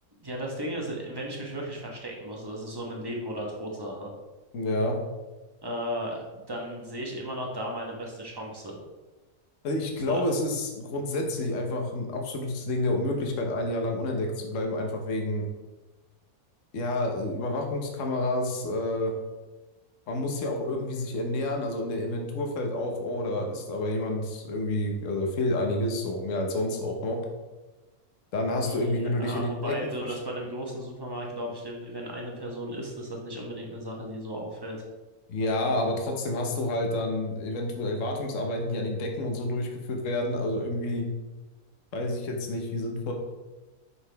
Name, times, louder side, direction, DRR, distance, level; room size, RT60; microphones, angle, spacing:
voice 1, 0.2-4.1 5.6-8.8 10.1-10.2 28.6-34.8, equal, 20° right, -2 dB, 1.0 m, -35 dB
voice 2, 4.5-5.0 9.6-15.5 16.7-19.1 20.1-27.2 28.3-29.7 30.1-30.2 35.3-41.1 41.9-43.1, left 1 dB, 60° left, 2 dB, 1.2 m, -29 dB
5.7 x 5.6 x 3.4 m, 1.1 s
omnidirectional pair, 1.6 m